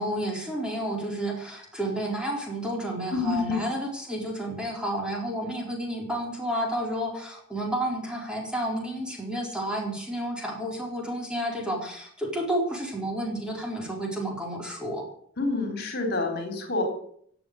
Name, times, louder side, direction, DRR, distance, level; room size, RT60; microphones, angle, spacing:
voice 1, 0.0-15.0, right 1 dB, 5° right, -2 dB, 4.3 m, -31 dB
voice 2, 3.1-3.6 15.4-16.8, left 3 dB, 50° left, 3 dB, 3.9 m, -27 dB
17.5 x 8.3 x 8.0 m, 0.63 s
head